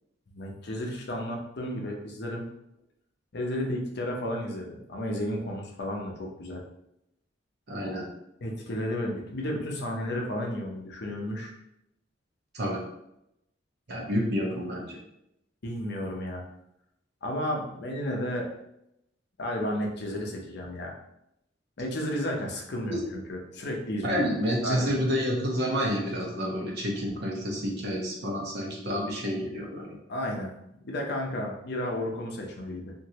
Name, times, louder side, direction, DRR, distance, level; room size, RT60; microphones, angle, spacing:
voice 1, 0.3-2.5 3.3-6.6 8.4-11.5 15.6-16.4 17.2-18.5 19.4-20.9 21.8-24.2 24.6-25.0 30.1-30.5 30.8-32.9, left 1 dB, 60° left, 1 dB, 0.6 m, -32 dB
voice 2, 7.7-8.0 12.5-12.8 13.9-15.0 22.9-23.0 24.0-29.9, equal, 60° right, -2 dB, 0.9 m, -29 dB
2.9 x 2.6 x 2.8 m, 0.81 s
head